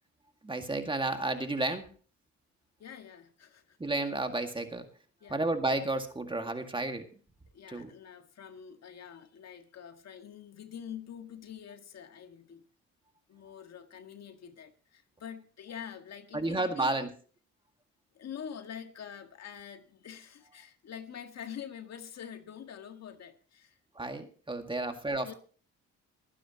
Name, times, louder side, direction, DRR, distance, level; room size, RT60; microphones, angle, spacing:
voice 1, 0.4-1.9 3.8-4.9 5.3-7.1 7.7-7.9 16.3-17.1 24.0-25.3, right 2 dB, 15° right, 6 dB, 2.0 m, -32 dB
voice 2, 2.8-3.8 5.2-5.4 7.5-12.6 13.3-17.0 18.1-23.8 24.8-25.3, left 8 dB, 60° left, 6 dB, 1.8 m, -46 dB
24.0 x 9.9 x 2.9 m, 0.40 s
cardioid pair, 90°, 30 cm